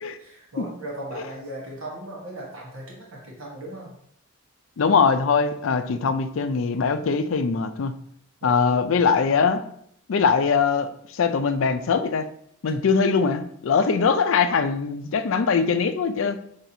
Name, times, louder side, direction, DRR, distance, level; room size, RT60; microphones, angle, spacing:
voice 1, 0.2-3.9 8.4-8.7, right 1 dB, 80° right, -3 dB, 1.2 m, -37 dB
voice 2, 4.8-7.9 8.4-9.6 10.1-12.3 12.6-16.4, left 5 dB, 75° left, 9 dB, 0.4 m, -22 dB
5.7 x 3.4 x 2.7 m, 0.67 s
head